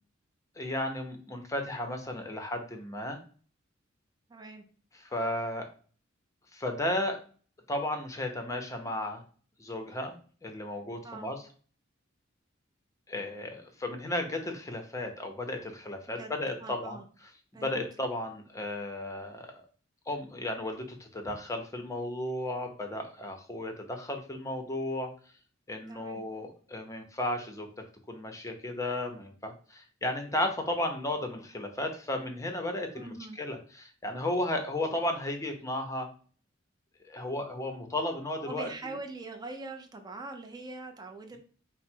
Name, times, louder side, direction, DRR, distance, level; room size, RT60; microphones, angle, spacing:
voice 1, 0.6-3.2 5.0-5.7 6.5-7.2 7.7-9.2 9.6-10.1 10.4-11.4 13.1-17.0 17.6-19.6 20.1-25.1 25.7-27.7 28.1-36.1 37.0-38.9, left 1 dB, 15° left, 4 dB, 0.7 m, -34 dB
voice 2, 4.3-4.6 11.0-11.4 16.1-16.3 16.6-17.0 17.5-17.8 25.9-26.3 32.9-33.4 38.5-41.4, right 3 dB, 20° right, 4 dB, 0.5 m, -42 dB
4.8 x 2.0 x 4.3 m, 0.41 s
head